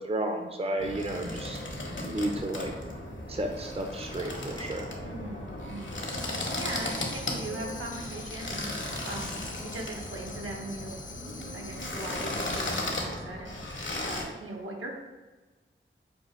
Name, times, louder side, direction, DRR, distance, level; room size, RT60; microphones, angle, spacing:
voice 1, 0.0-1.6 2.0-2.7 3.3-4.9, right 1 dB, 30° right, 3 dB, 0.5 m, -32 dB
sound 1, 0.8-14.2, left 1 dB, 60° left, 1.0 m, -36 dB
voice 2, 5.0-5.9 6.6-8.6 9.1-9.4 9.6-11.0 11.5-13.5 14.0-14.9, right 2 dB, 75° right, -1 dB, 0.8 m, -39 dB
Tambourine, 6.0-13.1, left 4 dB, 40° left, 0.5 m, -46 dB
5.3 x 2.4 x 3.1 m, 1.2 s
cardioid pair, 40°, 21 cm